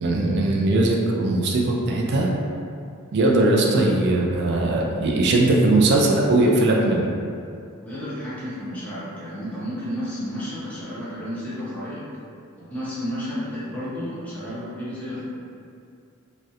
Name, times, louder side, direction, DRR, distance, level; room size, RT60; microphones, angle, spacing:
voice 1, 0.0-2.3 3.1-7.1, right 2 dB, 50° right, -1 dB, 0.3 m, -20 dB
voice 2, 7.8-12.1 12.6-15.2, equal, 5° left, -10 dB, 0.5 m, -32 dB
2.3 x 2.0 x 2.7 m, 2.4 s
head